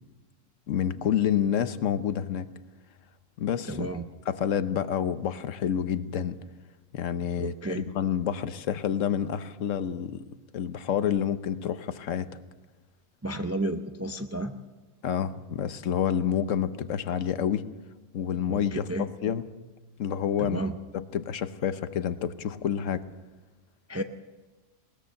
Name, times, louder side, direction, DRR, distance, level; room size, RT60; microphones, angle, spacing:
voice 1, 0.7-2.5 3.4-3.9 4.3-6.4 6.9-10.3 10.5-12.3 15.0-17.7 18.1-19.5 20.0-20.6 20.9-23.1, left 9 dB, 75° left, 12 dB, 1.2 m, -28 dB
voice 2, 3.7-4.1 7.4-7.9 13.2-14.5 18.5-19.1 20.4-20.7 23.9-24.0, right 2 dB, 15° right, 6 dB, 0.6 m, -32 dB
20.5 x 19.5 x 6.5 m, 1.2 s
omnidirectional pair, 1.3 m